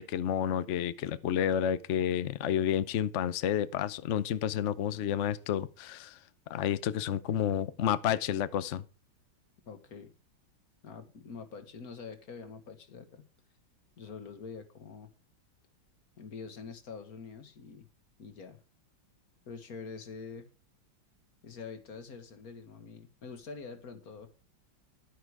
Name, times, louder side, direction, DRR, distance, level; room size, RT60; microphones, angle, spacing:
voice 1, 0.0-6.2 6.5-8.8, left 9 dB, 75° left, 0.6 m, -30 dB
voice 2, 9.7-10.1 10.8-13.3 14.0-15.1 16.2-17.9 18.2-18.6 19.5-20.5 21.4-24.3, left 5 dB, 50° left, 1.9 m, -45 dB
11.5 x 9.9 x 4.8 m
omnidirectional pair, 2.1 m